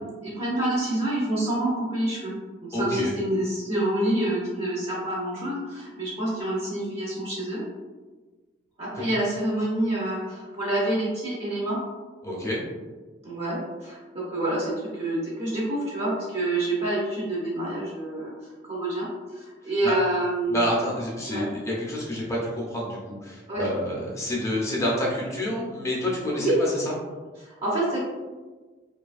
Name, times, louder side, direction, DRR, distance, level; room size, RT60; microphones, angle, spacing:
voice 1, 0.2-2.3 2.6-7.6 8.8-11.8 13.2-18.3 18.7-19.1 19.3-20.7 21.3-21.4 23.5-23.7 26.4-26.6 27.4-28.0, right 1 dB, 30° right, -7 dB, 0.6 m, -27 dB
voice 2, 2.7-3.1 12.2-12.6 19.8-19.9 20.5-26.9, left 1 dB, 15° left, -4 dB, 0.6 m, -28 dB
2.7 x 2.4 x 2.4 m, 1.3 s
head